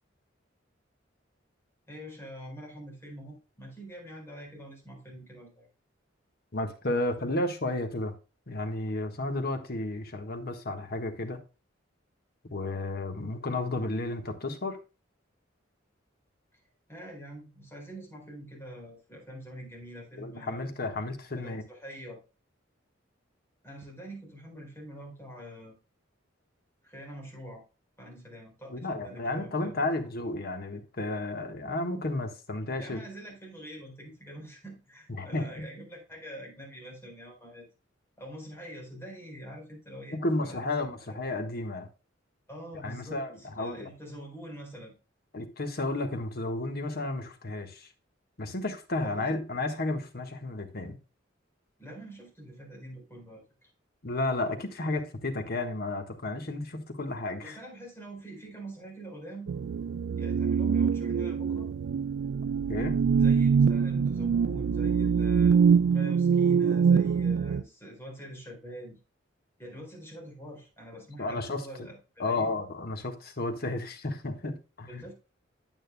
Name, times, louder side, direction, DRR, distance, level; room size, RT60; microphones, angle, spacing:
voice 1, 1.9-5.7 16.9-20.7 21.4-22.2 23.6-25.8 26.8-27.6 28.0-29.8 32.8-37.7 38.2-40.7 42.5-44.9 49.0-49.3 51.8-53.7 54.8-55.0 57.4-59.5 60.1-61.7 63.2-65.6 65.9-69.0 69.6-72.6 74.9-75.1, right 1 dB, 15° left, 4.4 m, -45 dB
voice 2, 6.5-8.1 8.5-11.4 12.4-14.8 20.2-21.6 28.7-33.0 35.1-35.7 40.1-41.9 42.8-43.9 45.3-47.9 48.4-51.0 54.0-57.6 62.7-63.0 71.2-71.9 72.2-75.1, left 2 dB, 55° left, 1.4 m, -32 dB
sound 1, 59.5-67.6, right 6 dB, 65° right, 0.3 m, -24 dB
9.2 x 8.9 x 2.2 m
head